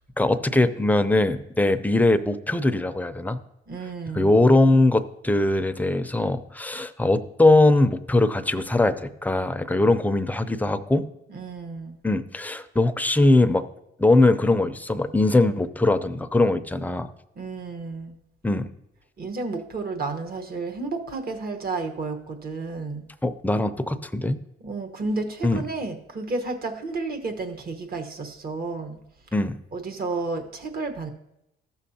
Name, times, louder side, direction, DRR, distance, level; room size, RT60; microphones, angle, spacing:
voice 1, 0.2-3.4 4.1-11.1 12.0-13.7 14.0-17.1 18.4-18.7 23.2-24.4 25.4-25.6 29.3-29.6, left 2 dB, 10° left, 11 dB, 0.5 m, -21 dB
voice 2, 3.7-4.4 11.3-12.0 17.4-18.2 19.2-23.1 24.6-29.0 29.7-31.1, right 3 dB, 50° right, 5 dB, 1.2 m, -31 dB
14.5 x 6.3 x 2.8 m, 0.82 s
cardioid pair, 90°, 20 cm